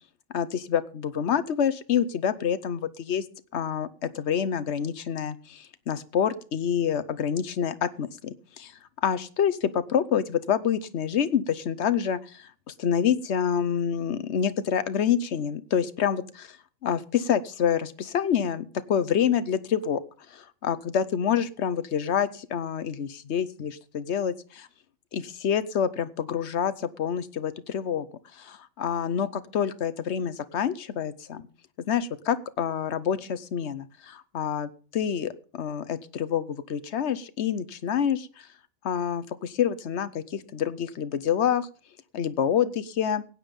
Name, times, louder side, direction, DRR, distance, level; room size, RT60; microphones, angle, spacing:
voice 1, 0.3-3.2 3.5-8.7 9.0-16.6 16.8-20.0 20.3-24.3 25.1-28.1 28.3-31.4 31.9-38.5 38.8-41.7 42.1-43.2, left 8 dB, 90° left, 15 dB, 1.1 m, -27 dB
16.0 x 9.3 x 5.3 m, 0.40 s
omnidirectional pair, 1.1 m